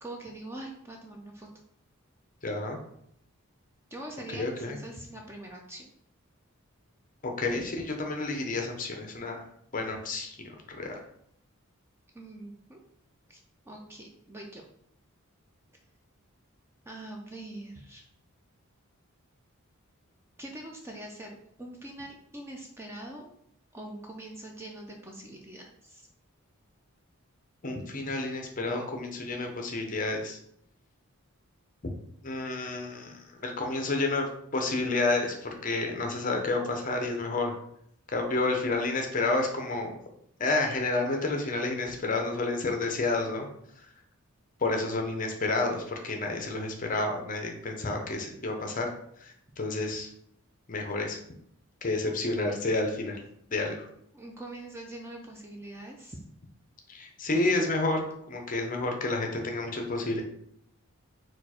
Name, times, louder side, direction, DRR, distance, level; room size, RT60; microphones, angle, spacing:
voice 1, 0.0-1.5 3.9-5.9 12.1-12.8 13.3-13.4 13.7-14.6 16.9-18.0 20.4-23.3 23.7-26.1 52.0-52.1 53.6-53.7 54.1-56.2, right 1 dB, 10° right, 1 dB, 0.4 m, -43 dB
voice 2, 2.4-2.8 4.4-4.8 7.2-9.4 9.7-11.0 27.6-30.4 32.2-34.3 34.5-37.5 38.1-40.0 40.4-43.5 44.6-48.9 49.2-50.1 50.7-51.2 51.8-53.2 53.5-53.8 56.9-60.2, left 2 dB, 35° left, 3 dB, 0.6 m, -30 dB
4.3 x 2.4 x 4.2 m, 0.72 s
head